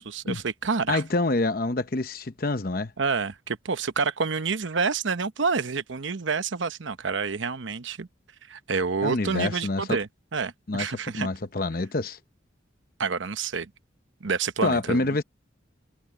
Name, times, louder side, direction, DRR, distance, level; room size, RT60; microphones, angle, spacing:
voice 1, 0.0-1.0 3.0-8.1 8.5-11.3 13.0-13.7 14.2-15.0, right 5 dB, 75° right, 0.9 m, -28 dB
voice 2, 0.9-2.9 9.0-10.0 10.7-12.2 14.6-15.2, left 2 dB, 45° left, 0.8 m, -27 dB
head